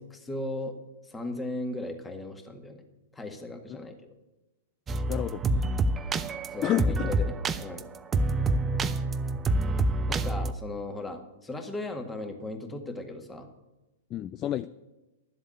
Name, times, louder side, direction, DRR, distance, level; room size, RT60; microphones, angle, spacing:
voice 1, 0.1-0.8 1.0-2.8 3.1-4.0 6.5-7.3 7.6-7.9 10.1-13.5, left 2 dB, 10° left, 5 dB, 1.9 m, -37 dB
sound 1, 4.9-10.5, right 2 dB, 20° right, 0.6 m, -27 dB
voice 2, 5.1-5.4 6.6-7.1 14.1-14.7, left 12 dB, 30° left, 14 dB, 0.4 m, -29 dB
12.0 x 7.9 x 7.8 m, 1.0 s
figure-of-eight pair, 110°, 0 cm